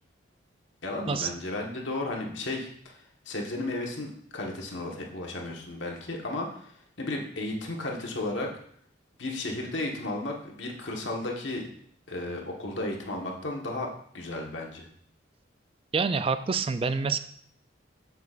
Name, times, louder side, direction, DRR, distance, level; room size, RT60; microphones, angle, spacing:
voice 1, 0.8-3.0 3.2-8.5 9.2-11.7 12.1-14.9, left 2 dB, 75° left, 0 dB, 1.3 m, -34 dB
voice 2, 15.9-17.2, right 5 dB, 30° right, 11 dB, 0.3 m, -27 dB
7.9 x 7.2 x 2.5 m, 0.63 s
head